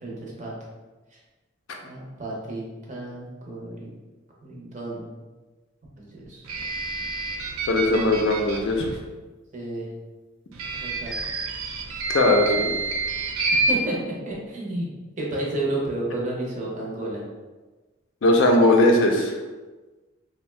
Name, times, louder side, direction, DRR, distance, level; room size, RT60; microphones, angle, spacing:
voice 1, 0.0-0.5 1.1-1.2 1.8-3.9 4.4-5.1 6.0-6.5 9.5-9.9 10.8-11.1 13.7-14.9 15.2-17.2, right 2 dB, 35° right, -3 dB, 0.6 m, -31 dB
sound 1, 6.4-9.0 10.5-13.7, right 3 dB, 90° right, 0.4 m, -28 dB
voice 2, 7.7-8.9 12.1-12.7 18.2-19.4, left 1 dB, 65° left, 2 dB, 0.4 m, -19 dB
2.7 x 2.1 x 3.1 m, 1.2 s
head